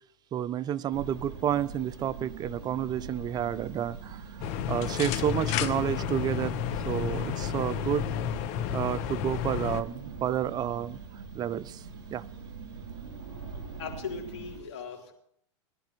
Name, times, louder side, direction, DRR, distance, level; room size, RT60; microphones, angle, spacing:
voice 1, 0.3-6.6 6.9-8.1 8.7-11.0 11.3-11.8 12.1-12.2, right 10 dB, 25° right, 0.5 m, -30 dB
sound 1, 0.9-14.6, right 4 dB, 65° right, 6.7 m, -42 dB
sound 2, 4.4-9.8, left 10 dB, 45° left, 1.1 m, -31 dB
voice 2, 13.8-15.1, left 5 dB, 65° left, 3.8 m, -38 dB
21.5 x 12.0 x 3.2 m
hypercardioid pair, 110°, 16 cm